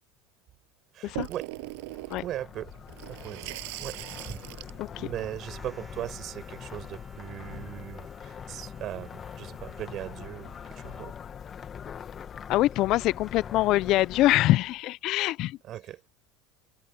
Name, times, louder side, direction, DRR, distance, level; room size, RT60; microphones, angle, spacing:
voice 1, 0.9-1.5 2.2-2.7 3.1-4.0 4.3-4.4 5.0-11.1 15.6-16.0, right 12 dB, 45° right, 6.8 m, -39 dB
Water tap faucet / Sink (filling or washing), 1.1-6.3, right 27 dB, 75° right, 7.0 m, -41 dB
sound 1, 1.3-14.8, left 8 dB, 30° left, 1.8 m, -43 dB
sound 2, 5.4-11.2, right 4 dB, 15° right, 4.4 m, -55 dB
voice 2, 12.5-15.6, left 16 dB, 55° left, 0.6 m, -24 dB
supercardioid pair, 120°, 0 cm